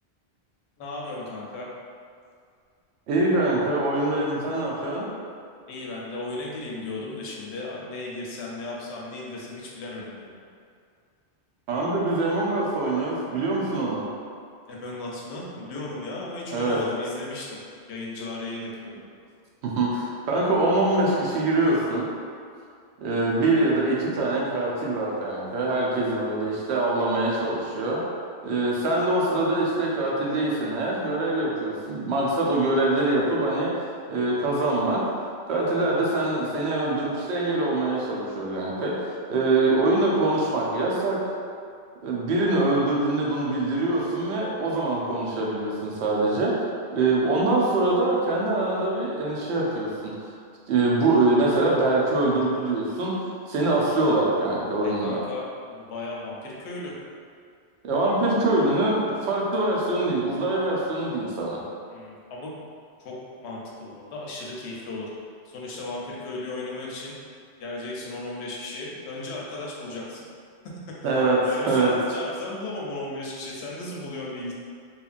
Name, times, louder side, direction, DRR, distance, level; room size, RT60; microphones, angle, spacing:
voice 1, 0.8-1.7 5.7-10.4 14.7-17.6 17.9-19.0 45.0-45.2 54.8-56.9 61.9-62.5 63.0-65.1 65.4-67.2 67.6-70.2 70.9-74.5, left 2 dB, 80° left, -3 dB, 0.9 m, -35 dB
voice 2, 3.1-5.0 11.7-14.0 16.5-16.8 19.6-22.0 23.0-28.0 28.4-33.7 34.1-35.0 35.5-39.0 39.3-41.2 42.0-46.5 46.9-50.3 50.7-53.1 53.5-55.2 57.8-61.6 71.0-71.4 71.7-71.9, right 2 dB, 80° right, -3 dB, 0.9 m, -24 dB
2.9 x 2.5 x 2.4 m, 2.2 s
omnidirectional pair, 1.1 m